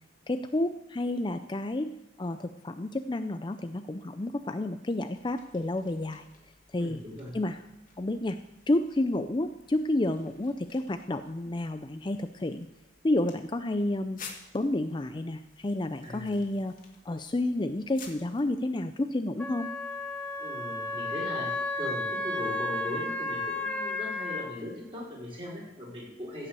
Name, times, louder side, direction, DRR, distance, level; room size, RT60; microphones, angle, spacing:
voice 1, 0.3-1.9 2.2-6.3 6.7-7.0 7.3-7.6 8.0-8.4 8.7-12.7 13.0-14.2 14.5-16.7 17.0-19.7, left 1 dB, 25° left, 9 dB, 0.4 m, -30 dB
sound 1, 5.1-18.5, left 5 dB, 45° left, 2.2 m, -53 dB
voice 2, 6.8-7.3 16.0-16.3 20.4-26.5, left 1 dB, 30° right, -4 dB, 5.0 m, -39 dB
Wind instrument woodwind instrument, 19.4-24.5, left 2 dB, 5° left, 1.0 m, -33 dB
16.0 x 5.7 x 8.2 m, 0.96 s
head